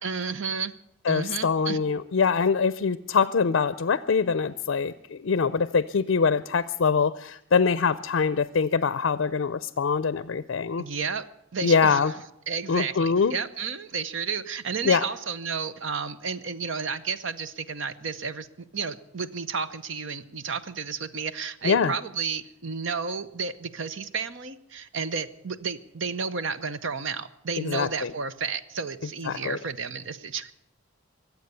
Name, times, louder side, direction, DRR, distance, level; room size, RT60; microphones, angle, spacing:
voice 1, 0.0-0.7 1.1-1.8 10.8-11.3 11.5-12.2 12.5-18.5 18.7-30.5, right 5 dB, 65° right, 12 dB, 0.8 m, -32 dB
voice 2, 1.1-10.8 11.6-12.1 12.7-13.3 14.8-15.0 21.6-21.9 27.6-28.1 29.3-29.6, left 5 dB, 65° left, 15 dB, 0.5 m, -24 dB
24.0 x 8.2 x 6.8 m, 0.81 s
head